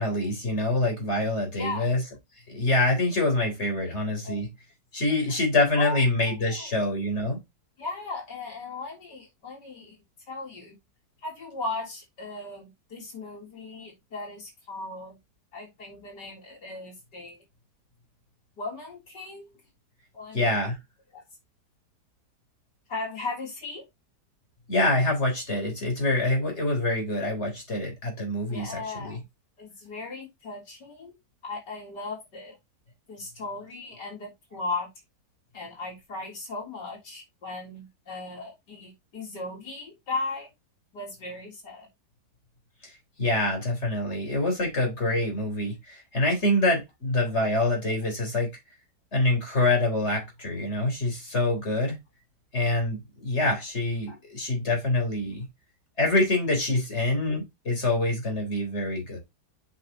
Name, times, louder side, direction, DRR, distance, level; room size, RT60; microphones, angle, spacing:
voice 1, 0.0-2.0 2.5-4.5 4.9-7.4 20.3-20.8 24.7-29.2 42.8-42.9 43.2-48.5 49.1-52.0 52.5-55.5 56.0-59.2, left 2 dB, 40° left, 4.0 m, -26 dB
voice 2, 1.5-1.9 3.8-3.9 4.2-4.4 5.3-5.4 5.8-6.7 7.8-10.0 10.3-10.8 11.2-15.2 15.5-17.4 18.6-19.6 20.1-20.5 21.1-21.2 22.9-23.9 28.5-29.2 29.6-31.1 31.4-32.5 33.1-34.9 35.5-40.5 40.9-41.9 44.0-44.1 54.1-54.2, left 3 dB, 85° left, 4.1 m, -37 dB
7.7 x 5.9 x 3.0 m
omnidirectional pair, 1.8 m